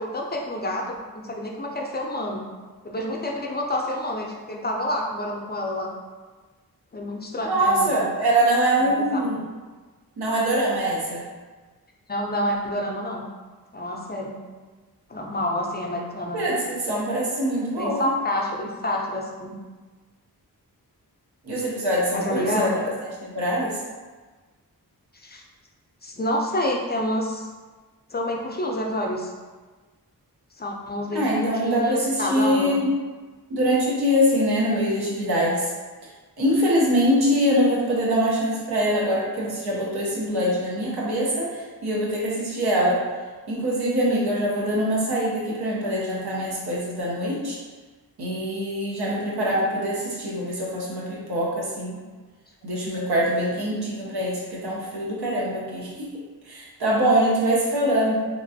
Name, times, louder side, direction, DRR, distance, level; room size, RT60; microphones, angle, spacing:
voice 1, 0.0-2.5 2.8-5.9 6.9-8.0 8.8-9.4 12.1-13.2 13.7-14.4 15.1-16.4 17.8-19.6 22.1-22.7 25.2-25.4 26.0-27.5 28.1-29.3 30.6-32.8 42.9-43.0, left 1 dB, 25° left, 0 dB, 0.5 m, -28 dB
voice 2, 7.5-9.4 10.2-11.2 16.3-18.1 21.5-22.8 23.2-23.8 31.1-32.9 33.5-35.7 36.4-41.5 41.8-43.0 43.5-47.6 48.2-52.0 52.6-56.1 56.5-58.2, equal, 85° right, -5 dB, 0.8 m, -23 dB
3.0 x 2.5 x 2.7 m, 1.3 s
cardioid pair, 50°, 37 cm